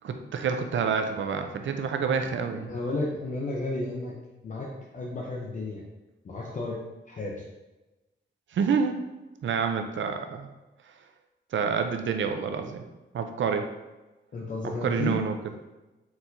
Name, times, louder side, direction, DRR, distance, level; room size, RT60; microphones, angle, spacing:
voice 1, 0.0-2.7 8.5-9.0 9.4-10.5 11.5-12.8 13.1-13.7 14.8-15.4, right 6 dB, 80° right, 6 dB, 0.5 m, -28 dB
voice 2, 2.7-4.1 4.4-5.8 6.2-6.8 7.1-7.4 14.3-15.2, left 2 dB, 40° left, -3 dB, 0.5 m, -32 dB
4.4 x 4.1 x 2.6 m, 1.1 s
wide cardioid pair, 150°, 19 cm